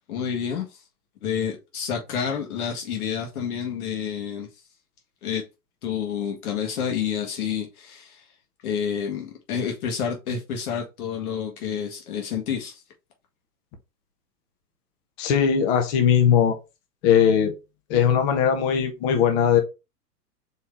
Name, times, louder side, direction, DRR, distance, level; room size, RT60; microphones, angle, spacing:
voice 1, 0.1-0.7 1.2-4.5 5.2-5.4 5.8-8.2 8.6-12.8, left 7 dB, 60° left, 1.8 m, -29 dB
voice 2, 15.2-16.6 17.0-17.5 17.9-19.6, left 8 dB, 40° left, 1.2 m, -19 dB
4.5 x 3.4 x 3.4 m
hypercardioid pair, 110°, 49 cm